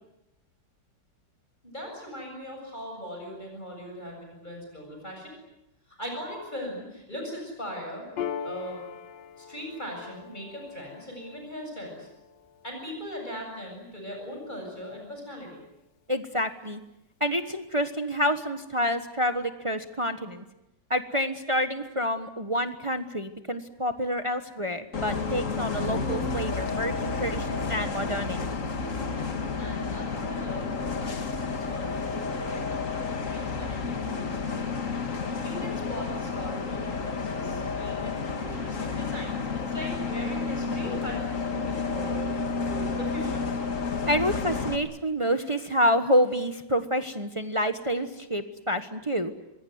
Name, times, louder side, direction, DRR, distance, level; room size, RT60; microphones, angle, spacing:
voice 1, 1.6-5.3 5.9-8.0 8.4-8.8 9.4-12.1 12.6-15.6 29.6-32.7 33.0-34.7 35.4-43.5, equal, 25° left, 1 dB, 7.8 m, -39 dB
Piano, 8.2-15.1, left 7 dB, 80° left, 2.1 m, -42 dB
voice 2, 16.1-16.8 17.2-20.4 20.9-28.6 44.1-49.3, equal, 20° right, 8 dB, 1.1 m, -28 dB
Bus, 24.9-44.8, left 4 dB, 50° left, 2.2 m, -31 dB
26.0 x 21.5 x 9.5 m, 0.90 s
omnidirectional pair, 1.9 m